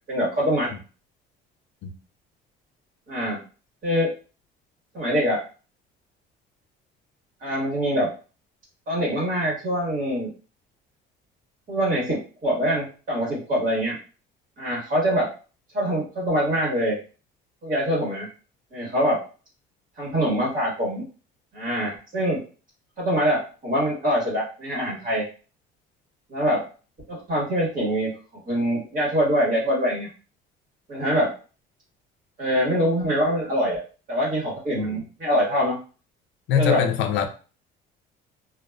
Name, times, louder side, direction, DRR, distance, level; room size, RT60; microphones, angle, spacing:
voice 1, 0.1-0.7 3.1-3.4 3.8-4.1 4.9-5.4 7.4-8.1 8.9-10.3 11.7-14.0 14.6-15.3 15.7-17.0 17.6-18.3 18.7-19.2 20.0-21.0 21.5-22.4 23.0-25.3 26.3-26.6 27.1-30.1 30.9-31.4 32.4-33.8 34.1-35.8 36.5-36.9, equal, 45° right, -5 dB, 1.4 m, -24 dB
voice 2, 36.5-37.3, left 8 dB, 70° left, 7 dB, 0.5 m, -23 dB
2.5 x 2.3 x 2.2 m, 0.36 s
cardioid pair, 115°, 20 cm